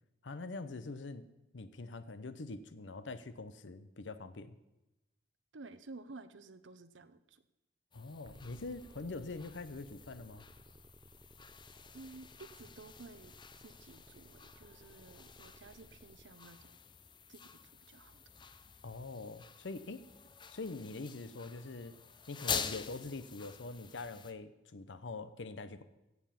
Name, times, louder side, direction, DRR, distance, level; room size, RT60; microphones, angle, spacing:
voice 1, 0.2-1.3 1.5-4.6 7.9-10.5 18.8-20.0 20.5-22.0 22.3-25.8, left 3 dB, 80° left, 12 dB, 0.8 m, -44 dB
voice 2, 5.5-7.4 11.9-13.3 13.6-16.8 17.3-17.5 17.9-18.2, right 3 dB, 90° right, 12 dB, 0.8 m, -53 dB
sound 1, 7.9-24.3, left 6 dB, 25° left, 0.6 m, -47 dB
sound 2, 8.2-16.2, right 1 dB, 25° right, 0.7 m, -60 dB
16.5 x 7.2 x 5.8 m, 0.97 s
head